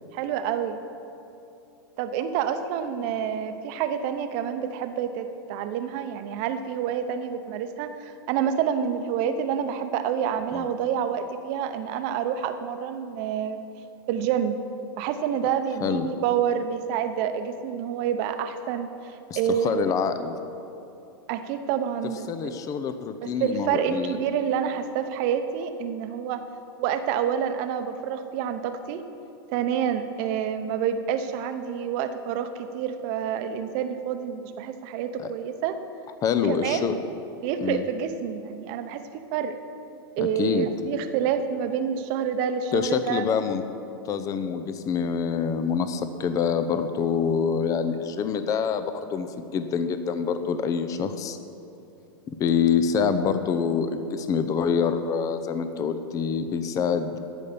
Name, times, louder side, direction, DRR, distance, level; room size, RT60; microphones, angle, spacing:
voice 1, 0.1-0.8 2.0-13.6 14.1-14.6 15.0-19.9 21.3-22.5 23.2-26.4 26.8-29.0 29.5-35.8 36.4-37.0 37.4-39.0 39.3-39.6 40.2-43.2, right 8 dB, 50° right, 9 dB, 0.8 m, -28 dB
voice 2, 19.3-20.3 22.3-24.1 35.2-35.3 36.2-36.9 37.6-37.8 40.2-40.7 42.7-43.6 44.1-51.4 52.3-57.2, left 6 dB, 30° left, 10 dB, 0.6 m, -26 dB
14.0 x 5.4 x 6.8 m, 2.8 s
hypercardioid pair, 115°, 13 cm